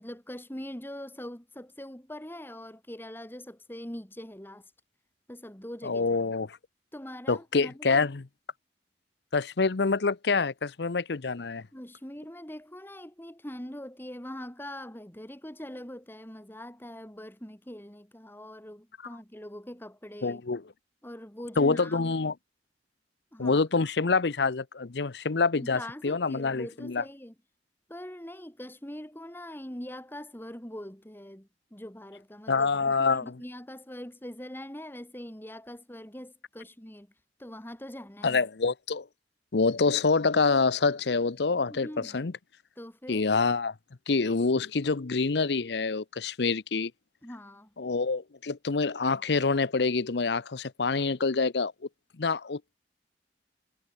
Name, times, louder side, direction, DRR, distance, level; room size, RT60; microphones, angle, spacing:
voice 1, 0.0-4.6 5.3-6.3 6.9-8.1 11.7-20.4 21.0-22.1 23.3-23.6 25.5-27.3 27.9-37.1 37.4-38.4 41.7-42.3 42.8-43.3 47.2-47.7, left 1 dB, 10° left, 2.7 m, -42 dB
voice 2, 5.8-6.6 7.3-8.3 9.3-11.6 20.2-20.6 21.6-22.3 23.4-27.0 32.5-33.4 38.2-39.1 39.5-42.3 43.1-43.7 44.1-46.9 47.8-51.7 52.2-52.8, left 4 dB, 70° left, 0.7 m, -26 dB
head